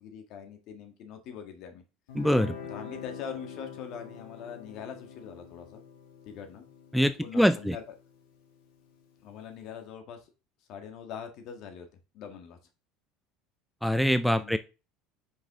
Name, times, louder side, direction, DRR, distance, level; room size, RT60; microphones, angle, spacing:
voice 1, 0.0-1.8 2.7-5.8 6.2-6.7 7.2-7.8 9.2-10.3 10.7-11.9 12.1-12.6 14.3-14.6, left 7 dB, 60° left, 5 dB, 1.7 m, -42 dB
Guitar, 2.1-9.2, left 6 dB, 90° left, 2.0 m, -45 dB
voice 2, 2.2-2.6 6.9-7.8 13.8-14.6, equal, ahead, 11 dB, 0.3 m, -24 dB
5.4 x 5.1 x 3.6 m, 0.30 s
supercardioid pair, 115°, 0 cm